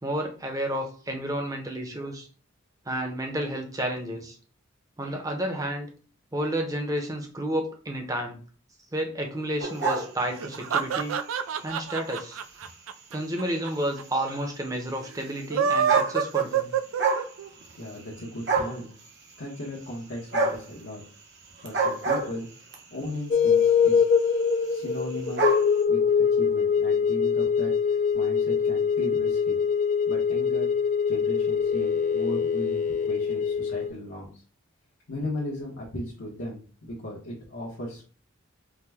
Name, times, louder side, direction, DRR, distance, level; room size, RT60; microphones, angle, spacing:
voice 1, 0.0-2.3 2.9-4.4 5.0-5.9 6.3-8.4 8.9-11.2 11.6-12.4 13.1-16.7, right 1 dB, 15° right, 3 dB, 0.7 m, -31 dB
sound 1, 9.6-10.8 11.4-11.6 12.4-12.5 12.7-12.8 13.1-13.2 14.4-14.5 15.4-15.5 15.7-16.5 16.8-17.3 17.6-18.2 18.5-18.8 20.3-20.7 21.6-22.8 23.6-23.9 24.2-24.3 24.5-24.6 24.8-25.7, right 4 dB, 55° right, 0.8 m, -26 dB
sound 2, 10.3-13.7 14.0-14.1 14.3-14.4 15.3-17.5, right 7 dB, 85° right, 0.4 m, -26 dB
voice 2, 17.8-18.9 19.4-21.0 21.6-22.5 22.9-24.0 24.7-25.5 25.9-29.6 30.1-30.7 31.1-34.4 35.1-38.1, left 1 dB, 75° left, -5 dB, 1.0 m, -37 dB
sound 3, 23.3-33.9, left 6 dB, 40° left, 0.3 m, -23 dB
4.8 x 2.2 x 3.4 m, 0.40 s
head